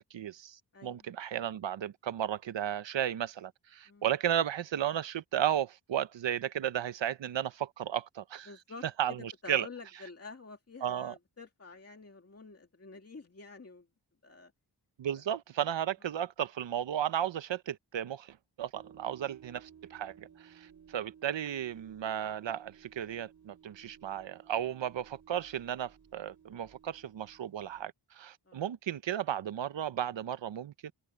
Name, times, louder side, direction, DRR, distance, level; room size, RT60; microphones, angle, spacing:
voice 1, 0.0-8.5 8.8-9.7 10.8-11.1 15.0-30.9, right 10 dB, 90° right, 0.9 m, -34 dB
voice 2, 0.7-1.0 3.9-4.1 8.5-9.2 9.4-13.9 14.2-14.5 15.1-15.2 19.0-19.2 28.5-28.6, left 4 dB, 35° left, 2.6 m, -49 dB
sound 1, 18.7-27.9, right 8 dB, 40° right, 4.1 m, -58 dB
wide cardioid pair, 130°, 43 cm